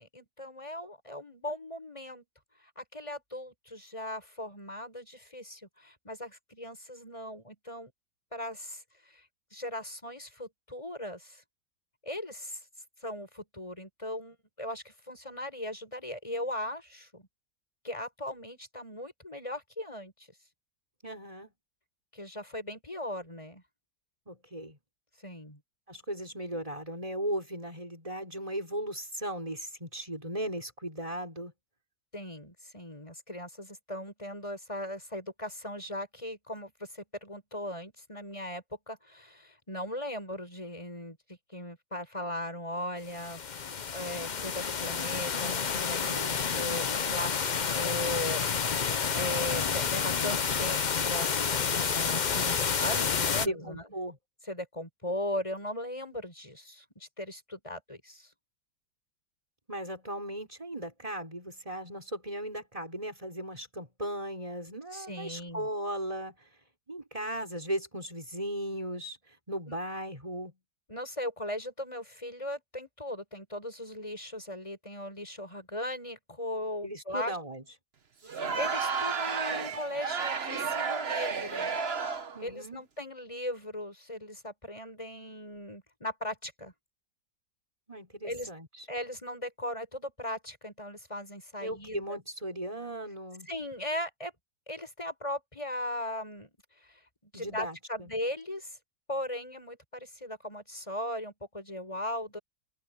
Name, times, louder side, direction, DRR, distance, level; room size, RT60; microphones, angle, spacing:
voice 1, 0.0-2.2 2.8-7.9 8.3-9.2 9.5-11.4 12.0-12.6 13.0-17.3 17.8-20.3 22.1-23.6 25.2-25.6 32.1-48.4 48.7-50.8 51.0-53.9 54.4-58.3 64.9-65.7 69.7-69.8 70.9-77.4 78.3-81.7 82.4-86.7 88.2-88.5 88.9-92.0 93.5-94.3 94.7-96.5 96.8-98.8 99.1-102.4, left 1 dB, 15° left, 7.1 m, -38 dB
voice 2, 21.0-21.5 24.3-24.8 25.9-31.5 46.2-46.6 53.4-54.2 59.7-66.4 66.9-69.2 69.5-70.6 76.8-77.6 82.3-82.8 87.9-88.7 91.6-93.5 97.3-98.1, right 1 dB, 20° right, 6.3 m, -37 dB
sound 1, 43.1-53.5, left 6 dB, 50° left, 0.5 m, -29 dB
Crowd, 78.2-82.4, right 5 dB, 40° right, 1.3 m, -32 dB
omnidirectional pair, 1.9 m